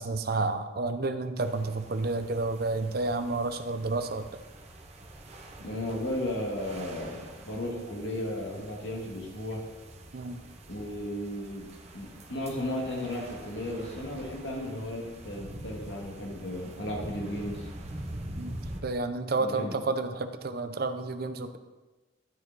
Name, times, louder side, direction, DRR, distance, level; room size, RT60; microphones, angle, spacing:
voice 1, 0.0-4.4 10.1-10.4 18.4-18.5 18.8-21.6, right 3 dB, 55° right, 9 dB, 0.6 m, -30 dB
sound 1, 1.4-18.8, right 1 dB, 35° right, 0.9 m, -45 dB
voice 2, 5.6-9.6 10.7-17.7 19.4-19.8, left 1 dB, 70° left, -1 dB, 1.8 m, -35 dB
12.5 x 4.7 x 3.9 m, 1.2 s
head